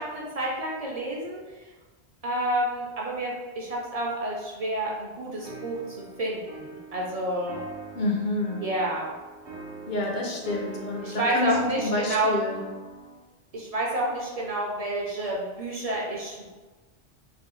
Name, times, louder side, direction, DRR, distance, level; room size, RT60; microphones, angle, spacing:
voice 1, 0.0-1.4 2.2-7.6 8.6-9.1 11.0-12.3 13.5-16.5, right 1 dB, 50° right, -3 dB, 0.5 m, -29 dB
sound 1, 5.4-13.2, right 3 dB, 85° right, 1.0 m, -43 dB
voice 2, 7.9-8.6 9.9-12.6, left 2 dB, 55° left, -1 dB, 0.6 m, -28 dB
3.1 x 2.5 x 3.0 m, 1.3 s
omnidirectional pair, 1.1 m